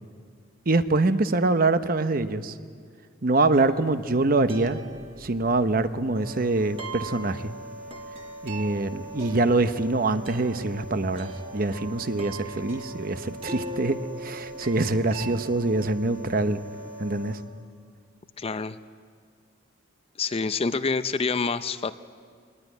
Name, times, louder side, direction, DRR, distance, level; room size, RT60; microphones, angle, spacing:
voice 1, 0.7-2.5 3.2-4.8 5.2-7.5 8.4-16.6 17.0-17.4, right 2 dB, 50° right, 11 dB, 0.8 m, -24 dB
sound 1, 3.5-15.4, right 2 dB, 30° right, 1.6 m, -42 dB
sound 2, 6.1-17.3, right 1 dB, 70° right, 3.9 m, -42 dB
voice 2, 18.4-18.8 20.2-21.9, left 4 dB, 30° left, 12 dB, 0.5 m, -27 dB
21.5 x 19.5 x 9.3 m, 2.1 s
head